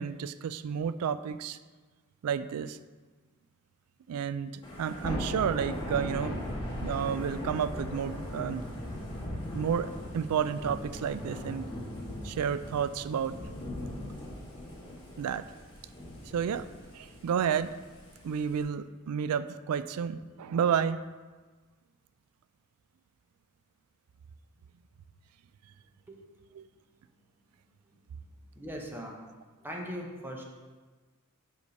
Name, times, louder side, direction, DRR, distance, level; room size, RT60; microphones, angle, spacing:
voice 1, 0.0-1.6 2.2-2.8 4.1-4.5 4.8-6.4 6.7-8.6 9.5-11.7 12.2-13.4 15.2-15.5 16.3-16.7 16.9-17.7 18.2-21.0 26.5-26.7, right 7 dB, 85° right, 14 dB, 0.3 m, -31 dB
Thunder / Rain, 4.6-18.6, left 1 dB, 25° left, 1.8 m, -39 dB
voice 2, 28.6-29.2 29.6-30.4, equal, 10° right, -1 dB, 0.9 m, -39 dB
5.2 x 4.9 x 5.3 m, 1.3 s
head